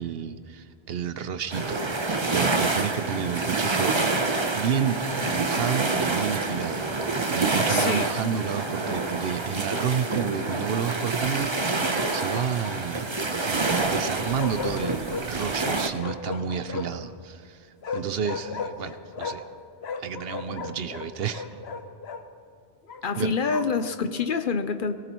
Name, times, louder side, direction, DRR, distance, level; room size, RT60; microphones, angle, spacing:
voice 1, 0.0-4.0 4.5-5.0 5.3-13.1 13.4-19.4 20.0-21.5 23.2-23.3, right 7 dB, 70° right, 12 dB, 0.9 m, -31 dB
sound 1, 1.5-15.9, right 3 dB, 30° right, 0.8 m, -27 dB
voice 2, 7.7-8.1 23.0-24.9, left 5 dB, 55° left, 9 dB, 0.8 m, -26 dB
Bark, 8.8-9.5 11.9-13.0 14.4-15.3 16.0-17.1 17.8-19.5 19.8-22.2 22.9-23.8, left 5 dB, 75° left, 1.1 m, -36 dB
24.0 x 18.5 x 3.1 m, 2.2 s
omnidirectional pair, 1.1 m